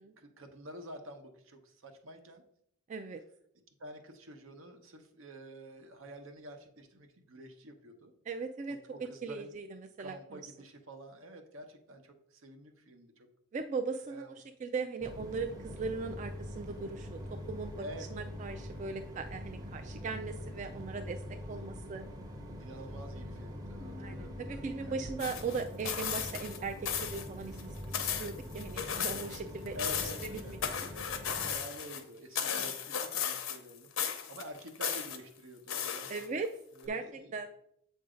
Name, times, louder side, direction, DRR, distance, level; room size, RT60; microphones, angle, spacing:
voice 1, 0.0-2.4 3.8-8.1 8.7-9.5 10.0-13.3 14.1-14.4 15.3-15.4 17.8-18.1 22.6-25.0 29.7-30.5 31.2-36.4 36.8-37.3, equal, 75° right, 6 dB, 0.9 m, -49 dB
voice 2, 2.9-3.2 8.3-8.8 9.2-10.4 13.5-17.2 17.5-17.7 18.1-21.2 21.5-22.0 24.0-29.8 30.3-30.9 32.5-32.7 36.1-36.5 36.9-37.5, right 4 dB, 35° right, 6 dB, 0.3 m, -39 dB
sound 1, 15.0-31.6, equal, 20° right, 0.7 m, -44 dB
sound 2, 23.8-27.4, left 4 dB, 45° left, 0.5 m, -56 dB
sound 3, 25.2-26.6 26.9-27.3 27.6-29.4 29.7-32.0 32.4-33.7 34.0-35.2 35.7-36.5 36.9-37.0, left 8 dB, 85° left, 0.7 m, -35 dB
7.7 x 2.7 x 4.9 m, 0.73 s
head